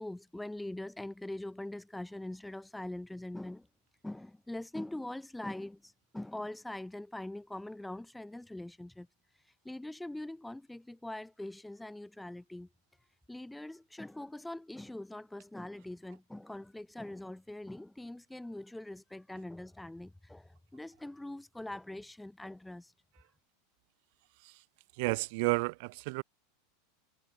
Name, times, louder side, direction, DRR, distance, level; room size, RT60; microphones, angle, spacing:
voice 1, 0.0-3.7 4.0-9.1 9.7-12.7 13.3-22.9, left 1 dB, 5° left, 1.8 m, -43 dB
voice 2, 25.0-26.2, right 28 dB, 55° right, 1.0 m, -31 dB
figure-of-eight pair, 85°, 0 cm